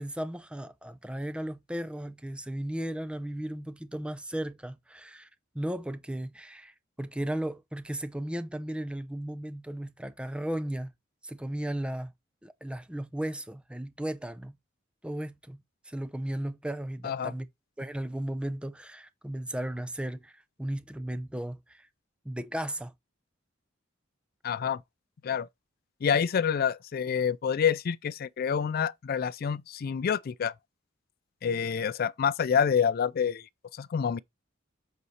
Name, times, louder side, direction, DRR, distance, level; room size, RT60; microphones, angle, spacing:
voice 1, 0.0-5.3 5.5-10.9 11.2-12.1 12.4-14.6 15.0-17.5 17.8-21.9 22.2-22.9, right 1 dB, 5° right, 0.5 m, -35 dB
voice 2, 24.4-24.8 25.2-25.5 26.0-30.5 31.4-33.4 33.7-34.2, left 7 dB, 50° left, 0.4 m, -27 dB
7.9 x 4.1 x 3.2 m
head